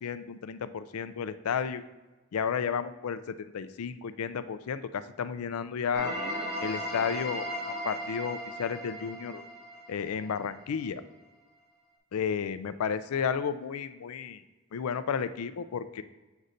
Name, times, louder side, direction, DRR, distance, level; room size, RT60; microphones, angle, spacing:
voice 1, 0.0-1.8 2.3-6.1 6.6-7.5 7.8-9.4 9.9-11.0 12.1-14.4 14.7-16.0, left 7 dB, 85° left, 12 dB, 0.4 m, -32 dB
sound 1, 5.9-10.7, equal, 75° right, 1.7 m, -37 dB
8.0 x 5.3 x 2.5 m, 1.2 s
head